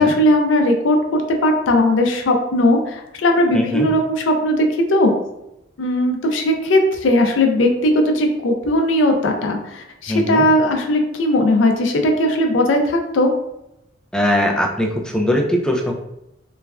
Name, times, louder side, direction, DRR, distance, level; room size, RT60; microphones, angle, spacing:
voice 1, 0.0-5.1 5.8-13.3, left 1 dB, 85° left, 3 dB, 0.5 m, -18 dB
voice 2, 3.5-3.9 10.1-10.5 14.1-15.9, left 1 dB, 5° left, 0 dB, 0.3 m, -20 dB
3.1 x 2.2 x 2.4 m, 0.85 s
head